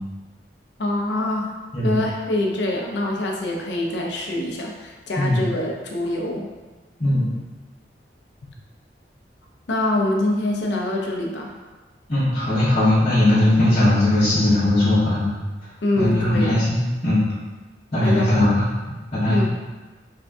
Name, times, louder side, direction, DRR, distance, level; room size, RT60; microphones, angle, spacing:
voice 1, 0.8-1.5 1.8-6.5 9.7-11.5 15.8-16.6 18.0-18.4 19.3-19.5, left 1 dB, 80° left, 0 dB, 0.6 m, -24 dB
voice 2, 12.1-15.3 16.0-17.2 17.9-18.6 19.1-19.5, left 1 dB, 40° left, -13 dB, 1.1 m, -19 dB
3.6 x 2.6 x 3.4 m, 1.2 s
head